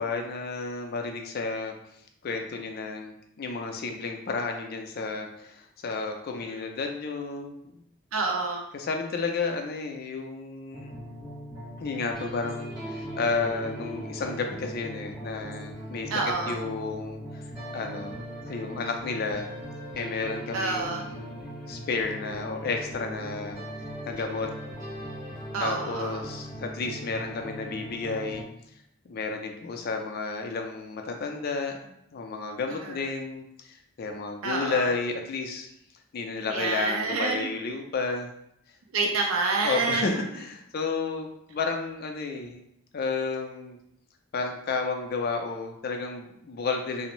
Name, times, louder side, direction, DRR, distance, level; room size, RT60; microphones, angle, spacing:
voice 1, 0.0-1.7 2.2-7.8 8.7-11.0 11.8-17.2 17.7-19.5 19.9-21.3 21.7-23.6 24.1-24.5 25.6-28.4 29.1-35.7 36.1-38.3 39.6-42.6 42.9-43.8 44.3-47.1, left 4 dB, 45° left, 4 dB, 0.3 m, -32 dB
voice 2, 8.1-8.6 16.1-16.6 20.5-21.0 25.5-26.2 32.8-33.0 34.4-34.9 36.5-37.5 38.9-40.2, right 3 dB, 75° right, 1 dB, 0.4 m, -28 dB
sound 1, 10.7-28.4, equal, 20° right, 1.2 m, -39 dB
2.5 x 2.0 x 3.0 m, 0.77 s
head